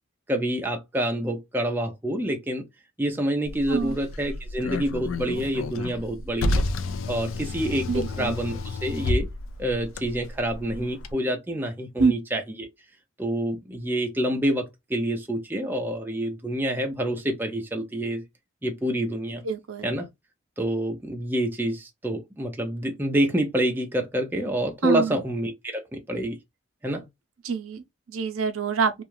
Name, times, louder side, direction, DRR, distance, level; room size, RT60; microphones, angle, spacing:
voice 1, 0.3-2.6 3.0-6.6 7.1-9.3 9.6-12.7 13.2-18.2 18.6-19.4 19.8-20.1 20.6-26.4 26.8-27.1, right 1 dB, 10° right, 0.4 m, -27 dB
Car, 3.4-11.1, left 2 dB, 80° left, 0.4 m, -31 dB
voice 2, 7.9-8.3 12.0-12.1 19.4-19.9 24.8-25.2 27.4-29.0, right 5 dB, 90° right, 0.6 m, -25 dB
2.4 x 2.3 x 3.0 m
head